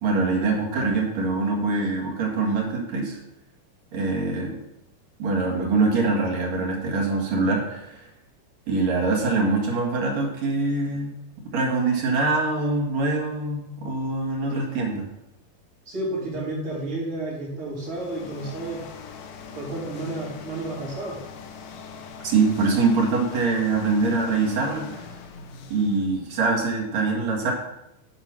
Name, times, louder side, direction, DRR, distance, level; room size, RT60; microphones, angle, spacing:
voice 1, 0.0-3.2 3.9-4.6 5.2-8.1 8.7-11.1 11.5-15.1 22.2-25.1 25.7-27.5, right 3 dB, 55° right, -1 dB, 2.8 m, -24 dB
voice 2, 15.9-18.8 19.5-21.2, right 2 dB, 35° right, -7 dB, 4.9 m, -31 dB
sound 1, 17.6-26.7, left 5 dB, 70° left, 2.2 m, -42 dB
10.5 x 5.4 x 6.0 m, 0.87 s
omnidirectional pair, 4.3 m